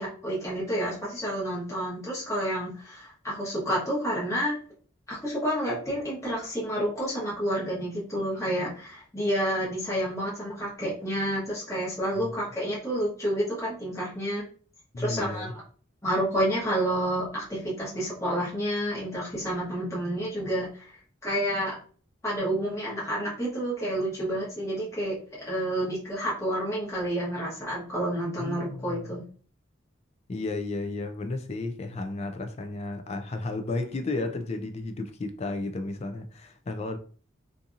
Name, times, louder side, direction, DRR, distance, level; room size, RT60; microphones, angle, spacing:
voice 1, 0.0-4.5 5.1-14.4 15.0-15.6 16.0-20.9 21.2-21.7 22.2-29.2, equal, 15° left, 1.0 m, -29 dB
voice 2, 14.9-15.5 28.4-29.1 30.3-37.0, left 2 dB, 30° left, 0.3 m, -33 dB
2.7 x 2.5 x 2.4 m
head